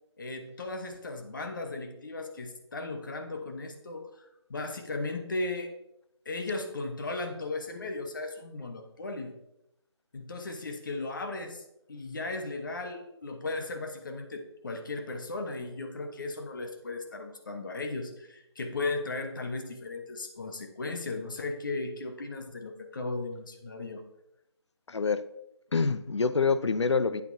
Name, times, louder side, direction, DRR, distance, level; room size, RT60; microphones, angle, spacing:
voice 1, 0.2-5.7 6.2-9.3 10.1-24.0, left 3 dB, 45° left, 5 dB, 1.0 m, -36 dB
voice 2, 24.9-25.2 25.7-27.2, left 4 dB, 75° left, 13 dB, 0.6 m, -26 dB
8.4 x 7.7 x 2.7 m, 0.84 s
figure-of-eight pair, 165°, 15 cm